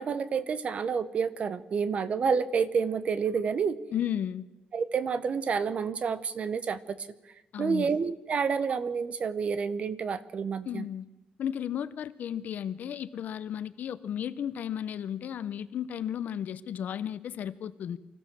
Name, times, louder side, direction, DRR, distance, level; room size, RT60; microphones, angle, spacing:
voice 1, 0.0-3.8 4.7-7.0 7.6-10.9, right 6 dB, 45° right, 15 dB, 1.0 m, -29 dB
voice 2, 3.9-4.5 7.5-7.9 10.6-11.0 11.4-18.0, left 9 dB, 70° left, 14 dB, 0.9 m, -34 dB
24.5 x 15.0 x 7.6 m, 1.0 s
wide cardioid pair, 155°, 3 cm